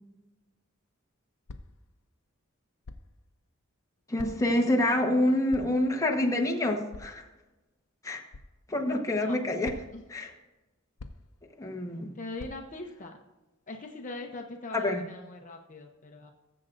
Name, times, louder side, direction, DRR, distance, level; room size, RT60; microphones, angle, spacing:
sound 1, 1.5-1.8 2.8-3.2 4.2-4.6 5.5-5.9 6.9-7.2 8.3-8.5 9.6-10.1 11.0-11.4 12.4-12.8, left 3 dB, 85° left, 0.6 m, -45 dB
voice 1, 4.1-7.2 8.0-8.2 8.7-9.7 10.1-10.3 11.6-12.1 14.7-15.0, left 1 dB, 15° left, 1 dB, 1.2 m, -27 dB
voice 2, 12.1-13.2 13.7-16.3, left 2 dB, 40° left, 2 dB, 0.8 m, -41 dB
20.0 x 7.7 x 2.6 m, 1.1 s
head